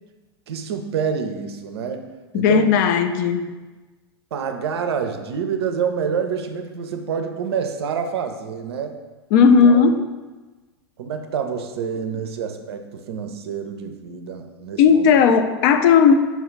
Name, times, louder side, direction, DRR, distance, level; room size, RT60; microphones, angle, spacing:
voice 1, 0.5-2.1 2.3-2.8 4.3-8.9 9.5-9.8 11.0-15.3, right 6 dB, 70° right, 7 dB, 0.4 m, -27 dB
voice 2, 2.3-3.5 9.3-10.0 14.8-16.1, left 6 dB, 50° left, 9 dB, 0.4 m, -15 dB
5.4 x 2.3 x 3.1 m, 1.2 s
hypercardioid pair, 100°, 14 cm